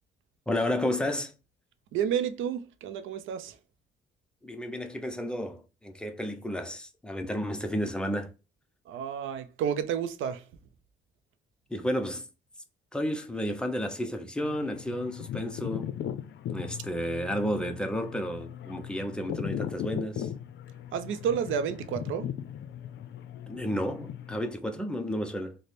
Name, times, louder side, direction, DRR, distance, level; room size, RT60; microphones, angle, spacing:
voice 1, 0.5-1.3 4.4-8.3 11.7-12.3 12.9-15.9 16.5-20.3 23.5-25.6, equal, 5° left, 0.5 m, -32 dB
voice 2, 1.9-3.6 8.9-10.4 20.9-22.3, right 8 dB, 80° right, 0.5 m, -30 dB
sound 1, 14.4-24.5, left 10 dB, 70° left, 0.5 m, -38 dB
3.2 x 2.1 x 4.1 m
cardioid pair, 90°, 20 cm